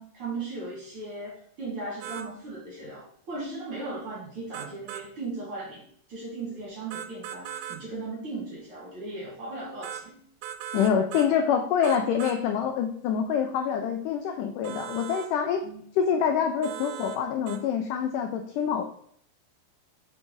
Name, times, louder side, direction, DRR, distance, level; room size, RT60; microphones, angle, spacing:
voice 1, 0.0-10.2 15.6-15.8, right 3 dB, 50° right, -4 dB, 2.0 m, -37 dB
sound 1, 2.0-2.3 4.5-5.1 6.9-7.8 9.8-10.1 10.4-11.3 11.8-12.4 14.6-15.3 16.6-17.2 17.5-17.6, right 10 dB, 85° right, 2.5 m, -38 dB
voice 2, 10.7-15.6 15.9-18.8, left 7 dB, 85° left, 5 dB, 1.9 m, -26 dB
5.4 x 4.7 x 5.1 m, 0.64 s
omnidirectional pair, 4.3 m